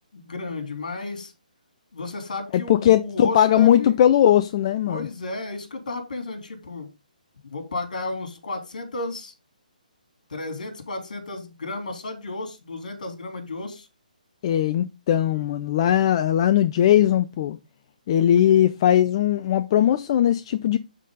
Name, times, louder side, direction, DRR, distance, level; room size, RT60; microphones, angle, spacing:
voice 1, 0.1-1.3 1.9-4.0 4.9-6.9 7.5-9.3 10.3-13.9, left 2 dB, 65° left, 3.4 m, -33 dB
voice 2, 2.5-5.1 14.4-17.6 18.1-20.8, left 11 dB, 40° left, 0.5 m, -19 dB
12.0 x 4.2 x 3.9 m
figure-of-eight pair, 140°, 5 cm